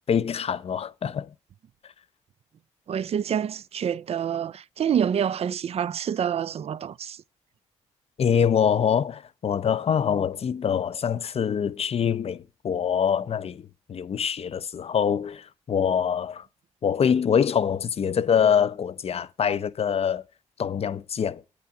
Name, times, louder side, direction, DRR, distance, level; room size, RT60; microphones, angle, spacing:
voice 1, 0.1-1.3 8.2-16.5 16.8-20.2 20.6-21.4, left 7 dB, 45° left, 0.5 m, -24 dB
voice 2, 2.9-7.2, right 8 dB, 50° right, 0.3 m, -27 dB
8.5 x 5.8 x 4.8 m
supercardioid pair, 50°, 14 cm